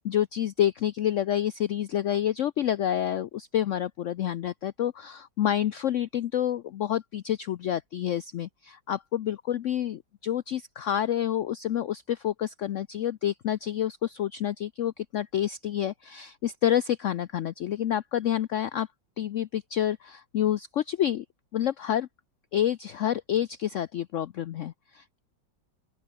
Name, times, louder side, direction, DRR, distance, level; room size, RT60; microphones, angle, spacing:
voice 1, 0.0-18.9 19.2-21.2 21.5-22.1 22.5-25.2, left 11 dB, 90° left, 0.6 m, -28 dB
open air
omnidirectional pair, 2.0 m